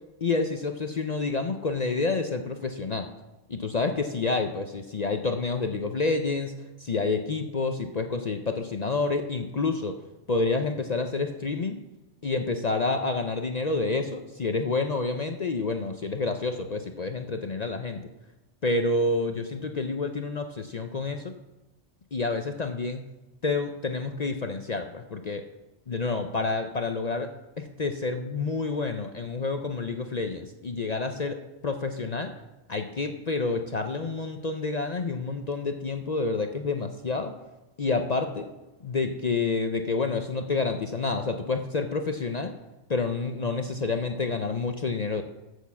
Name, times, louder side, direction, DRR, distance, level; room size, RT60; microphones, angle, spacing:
voice 1, 0.2-3.1 3.5-6.5 6.8-10.0 10.3-11.8 12.2-18.1 18.6-21.3 22.1-23.0 23.4-25.4 25.9-27.3 27.6-31.4 31.6-32.3 32.7-37.3 37.8-38.5 38.8-42.5 42.9-45.2, left 3 dB, 45° left, 6 dB, 0.6 m, -28 dB
8.0 x 6.4 x 7.0 m, 1.1 s
omnidirectional pair, 1.3 m